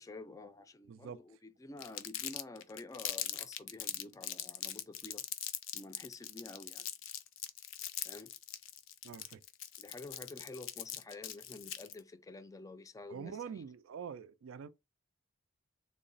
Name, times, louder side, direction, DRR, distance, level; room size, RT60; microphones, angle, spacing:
voice 1, 0.0-5.3 5.7-6.9 8.0-8.3 9.8-13.6, left 2 dB, 15° left, 0.4 m, -49 dB
voice 2, 0.9-1.2 9.0-9.4 13.1-14.7, right 7 dB, 85° right, 0.4 m, -45 dB
Crumpling crinkling, 1.8-12.0, left 11 dB, 85° left, 0.5 m, -41 dB
3.8 x 2.1 x 3.9 m
head